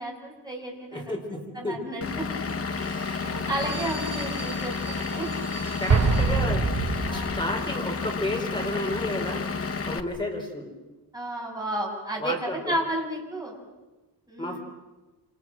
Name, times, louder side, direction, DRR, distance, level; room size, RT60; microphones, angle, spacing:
voice 1, 0.0-1.1 1.5-2.4 3.2-5.3 7.0-7.4 11.1-13.6 14.3-14.6, right 1 dB, 10° right, -2 dB, 6.8 m, -32 dB
voice 2, 0.9-1.8 5.8-6.6 7.1-9.4 9.9-10.7 12.2-12.8 14.4-14.6, left 1 dB, 10° left, 1 dB, 4.8 m, -31 dB
Vehicle / Engine, 2.0-10.0, left 5 dB, 35° left, 1.2 m, -31 dB
sound 1, 2.7-7.1 7.4-7.5, right 4 dB, 35° right, 2.6 m, -42 dB
Explosion, 5.9-7.6, right 4 dB, 55° right, 5.3 m, -24 dB
28.5 x 27.0 x 6.3 m, 1.1 s
wide cardioid pair, 160°, 42 cm